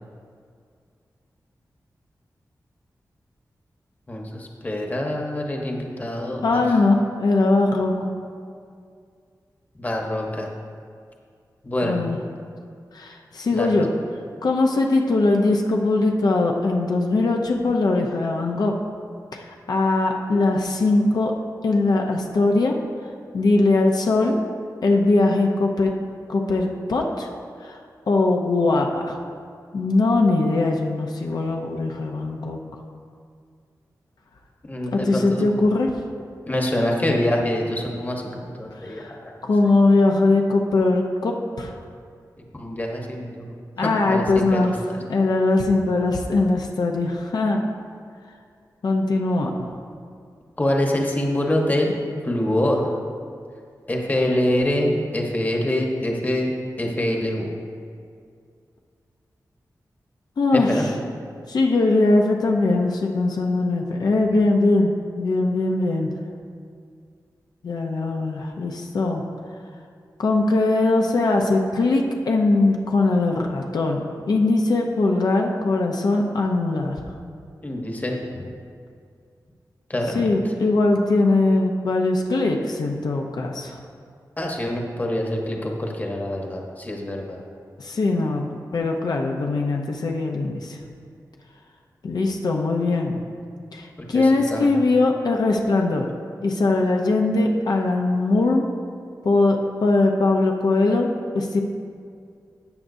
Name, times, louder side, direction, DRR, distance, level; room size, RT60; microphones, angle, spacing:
voice 1, 4.1-6.6 9.8-10.5 11.6-12.0 13.5-13.7 34.7-35.5 36.5-39.3 42.5-43.5 43.8-45.0 50.6-51.9 52.2-52.9 53.9-56.5 56.8-57.5 60.5-60.9 77.6-78.2 79.9-80.4 84.4-87.4 94.0-94.7, left 1 dB, 25° left, 0 dB, 1.1 m, -25 dB
voice 2, 6.4-8.1 11.8-12.2 12.9-13.9 14.4-18.7 19.3-21.3 21.6-22.7 23.3-24.4 24.8-25.9 26.3-27.3 27.6-27.8 28.1-29.1 29.7-32.6 34.9-35.9 38.8-39.1 39.4-41.7 43.8-44.7 45.1-47.6 48.8-49.7 60.4-60.9 61.5-66.1 67.6-69.2 70.2-77.0 80.1-83.8 87.8-88.5 88.7-90.8 92.0-93.2 93.7-96.1 96.4-98.7 99.2-101.1 101.3-101.6, left 2 dB, 75° left, 1 dB, 0.7 m, -21 dB
13.0 x 8.7 x 2.7 m, 2.3 s
wide cardioid pair, 140°, 7 cm